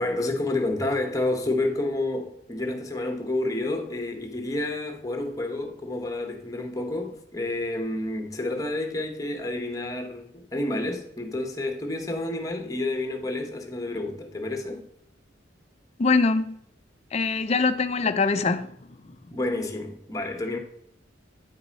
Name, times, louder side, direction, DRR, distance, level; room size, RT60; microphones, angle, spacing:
voice 1, 0.0-14.8 19.3-20.6, left 2 dB, 15° left, 1.0 m, -29 dB
voice 2, 16.0-16.6 17.1-18.7, left 4 dB, 35° left, 0.4 m, -23 dB
9.1 x 4.7 x 4.0 m
head